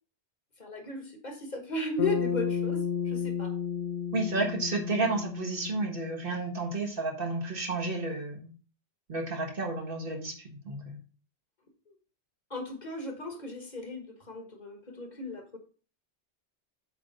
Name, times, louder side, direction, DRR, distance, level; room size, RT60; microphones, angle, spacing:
voice 1, 0.6-3.5 12.5-15.6, left 2 dB, 40° left, 4 dB, 1.5 m, -36 dB
Bass guitar, 2.0-6.4, left 7 dB, 80° left, 1.0 m, -33 dB
voice 2, 4.1-8.5 9.1-11.0, right 2 dB, 55° right, 2 dB, 1.7 m, -31 dB
8.0 x 3.4 x 5.3 m, 0.38 s
omnidirectional pair, 1.1 m